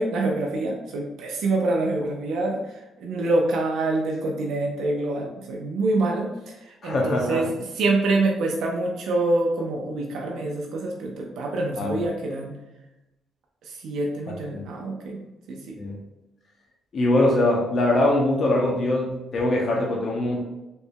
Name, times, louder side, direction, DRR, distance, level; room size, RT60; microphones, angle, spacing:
voice 1, 0.0-2.7 3.0-6.3 6.8-7.4 7.8-12.5 13.8-15.2 15.5-15.8, right 2 dB, 80° right, 0 dB, 0.6 m, -25 dB
voice 2, 6.8-7.5 11.8-12.1 14.3-14.6 15.8-16.0 16.9-20.4, left 1 dB, 50° left, -2 dB, 0.8 m, -23 dB
4.4 x 3.2 x 2.2 m, 0.98 s
cardioid pair, 90°, 0 cm